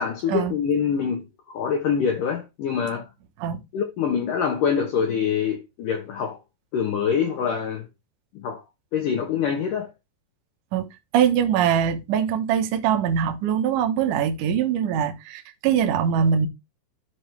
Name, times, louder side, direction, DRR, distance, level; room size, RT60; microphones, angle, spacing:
voice 1, 0.0-3.1 3.7-6.4 6.7-7.9 8.4-8.6 8.9-9.9, left 7 dB, 85° left, 1.8 m, -25 dB
voice 2, 11.1-16.5, right 8 dB, 85° right, 1.8 m, -22 dB
12.5 x 4.9 x 3.4 m
omnidirectional pair, 5.7 m